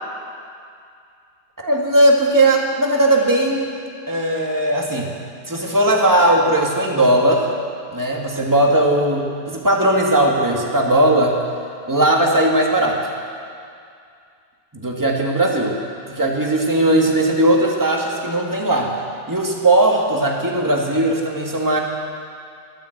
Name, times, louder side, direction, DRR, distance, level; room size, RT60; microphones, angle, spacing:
voice 1, 1.6-3.7 4.1-5.1 5.5-7.5 7.9-11.4 11.9-13.0 14.7-15.7 16.1-18.9 19.3-21.8, right 1 dB, 10° right, -1 dB, 1.6 m, -18 dB
14.5 x 12.5 x 7.9 m, 2.3 s
omnidirectional pair, 2.3 m